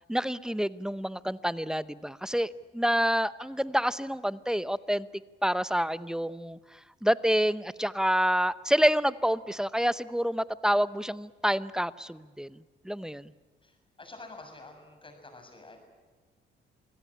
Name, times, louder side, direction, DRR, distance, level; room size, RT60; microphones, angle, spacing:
voice 1, 0.1-5.1 5.4-6.6 7.0-13.3, equal, 5° right, 15 dB, 0.7 m, -28 dB
voice 2, 13.6-15.8, left 2 dB, 25° left, 5 dB, 7.2 m, -48 dB
27.0 x 17.0 x 9.9 m, 1.4 s
cardioid pair, 90°, 20 cm